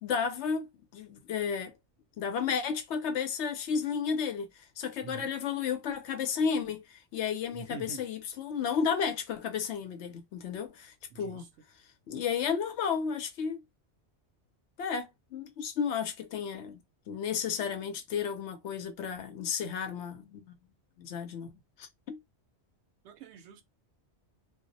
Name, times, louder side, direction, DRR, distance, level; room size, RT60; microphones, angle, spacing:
voice 1, 0.0-0.7 0.9-1.8 2.2-11.5 12.1-13.6 14.8-20.6 21.0-21.5 21.8-22.2, left 6 dB, 85° left, 0.9 m, -33 dB
voice 2, 5.0-5.3 7.5-8.1 11.1-11.5 23.0-23.6, right 7 dB, 80° right, 0.9 m, -46 dB
2.3 x 2.0 x 2.6 m
omnidirectional pair, 1.1 m